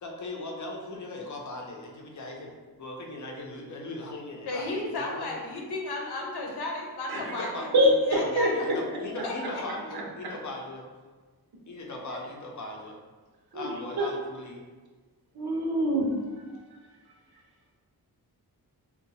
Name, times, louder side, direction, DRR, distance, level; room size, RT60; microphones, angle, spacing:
voice 1, 0.0-5.3 7.2-10.8 11.7-12.9 13.5-14.6, left 2 dB, 50° left, 0 dB, 0.5 m, -39 dB
voice 2, 4.5-7.7 8.1-8.5 9.2-9.6, left 2 dB, 85° left, -1 dB, 0.7 m, -33 dB
voice 3, 7.7-8.8 10.2-10.3 13.5-14.1 15.3-16.2, equal, 75° right, -1 dB, 0.7 m, -25 dB
2.7 x 2.3 x 4.0 m, 1.4 s
wide cardioid pair, 175°, 38 cm